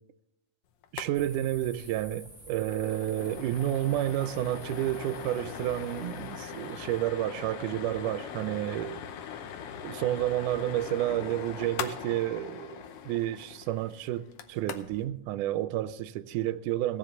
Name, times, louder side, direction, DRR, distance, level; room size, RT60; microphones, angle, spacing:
sound 1, 0.8-1.1 1.4-1.5 1.8-2.0 2.4-15.1, left 8 dB, 85° left, 1.2 m, -41 dB
voice 1, 0.9-9.0 9.8-17.0, right 13 dB, 80° right, 2.0 m, -30 dB
sound 2, 1.1-7.1, right 1 dB, 5° left, 1.7 m, -52 dB
17.0 x 5.8 x 6.8 m
omnidirectional pair, 3.7 m